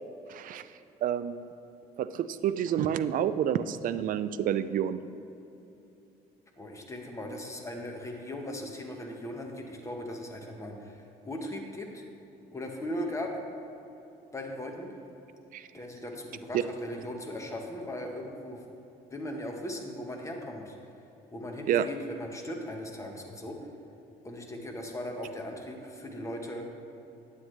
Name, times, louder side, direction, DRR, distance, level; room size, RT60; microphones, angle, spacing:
voice 1, 0.3-0.7 1.0-1.4 2.0-5.0 15.5-15.7 16.5-16.6 21.7-21.9, right 9 dB, 55° right, 13 dB, 0.4 m, -28 dB
voice 2, 6.6-12.0 12.5-13.3 14.3-14.9 15.7-18.6 19.1-20.8 21.3-23.6 24.2-26.6, left 1 dB, 15° left, 2 dB, 1.1 m, -38 dB
9.5 x 8.3 x 3.2 m, 2.9 s
cardioid pair, 110°, 17 cm